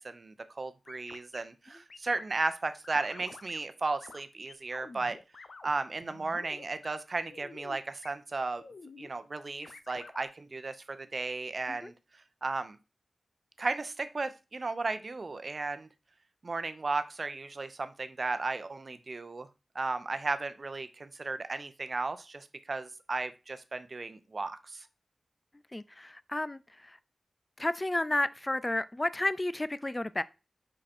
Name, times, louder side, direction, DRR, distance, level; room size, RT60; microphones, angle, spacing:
voice 1, 0.0-5.2 5.6-8.6 9.0-11.9 12.4-12.8 13.6-15.9 16.4-19.5 19.7-24.9, right 3 dB, 55° right, 0.7 m, -35 dB
sound 1, 0.9-1.4 1.9-2.5 2.8-3.6 4.0-4.2 4.5-5.7 6.0-7.0 7.3-7.8 8.0-8.1 8.6-9.1 9.6-10.3, left 4 dB, 70° left, 0.7 m, -49 dB
voice 2, 25.7-27.0 27.6-30.2, left 1 dB, 25° left, 0.4 m, -32 dB
5.1 x 4.9 x 4.3 m
cardioid pair, 55°, 0 cm